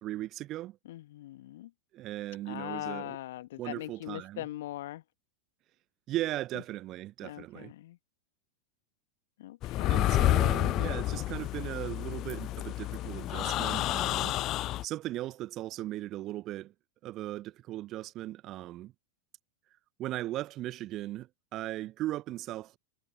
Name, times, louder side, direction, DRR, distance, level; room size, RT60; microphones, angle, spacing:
voice 1, 0.0-0.8 1.9-3.2 3.6-4.4 6.1-7.7 9.8-14.4 14.8-16.7 17.0-18.9 20.0-22.8, right 15 dB, 35° right, 0.7 m, -37 dB
voice 2, 0.9-1.7 2.5-5.0 6.5-6.6 7.2-8.0 9.4-10.3, left 15 dB, 55° left, 1.7 m, -41 dB
sound 1, 9.6-14.8, left 15 dB, 35° left, 0.7 m, -29 dB
figure-of-eight pair, 90°, 0 cm